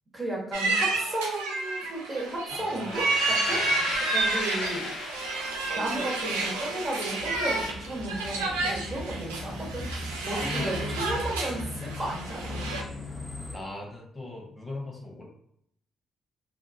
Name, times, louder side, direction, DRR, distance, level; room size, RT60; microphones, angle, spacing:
voice 1, 0.1-3.6 4.1-4.9 5.7-9.9 10.2-12.7, right 1 dB, 35° right, -4 dB, 1.3 m, -34 dB
sound 1, 0.5-12.8, right 3 dB, 90° right, 0.4 m, -30 dB
voice 2, 2.5-3.9 10.3-10.9 13.5-15.2, left 2 dB, 25° left, -2 dB, 1.0 m, -39 dB
sound 2, 2.9-5.7, left 4 dB, 60° left, 0.4 m, -34 dB
sound 3, 7.2-13.6, left 1 dB, 5° right, 0.9 m, -38 dB
2.5 x 2.5 x 2.7 m, 0.73 s
hypercardioid pair, 45°, 0 cm